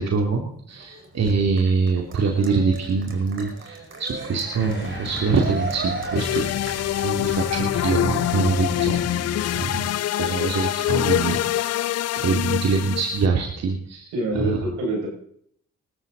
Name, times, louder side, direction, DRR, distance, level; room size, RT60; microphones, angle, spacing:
voice 1, 0.0-6.5 7.0-9.0 9.5-9.9 10.1-14.6, right 4 dB, 60° right, 1 dB, 2.9 m, -24 dB
Cheering, 0.7-7.7, right 3 dB, 45° right, 5.2 m, -36 dB
sound 1, 4.6-9.9, left 4 dB, 35° left, 3.2 m, -34 dB
sound 2, 6.1-13.3, left 13 dB, 60° left, 0.5 m, -25 dB
voice 2, 14.1-15.1, right 2 dB, 90° right, -1 dB, 6.8 m, -25 dB
20.5 x 13.0 x 4.1 m, 0.64 s
supercardioid pair, 60°, 29 cm